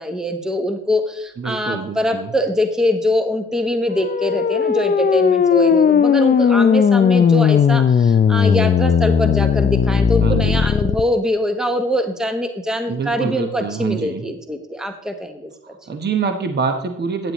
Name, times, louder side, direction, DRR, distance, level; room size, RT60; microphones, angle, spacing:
voice 1, 0.0-15.8, equal, ahead, 6 dB, 0.9 m, -23 dB
voice 2, 1.4-2.3 10.2-10.7 12.9-14.2 15.6-17.3, right 5 dB, 35° right, 6 dB, 1.0 m, -25 dB
sound 1, 3.9-11.0, left 7 dB, 30° left, 0.5 m, -16 dB
12.0 x 9.2 x 3.0 m, 0.84 s
cardioid pair, 90°, 30 cm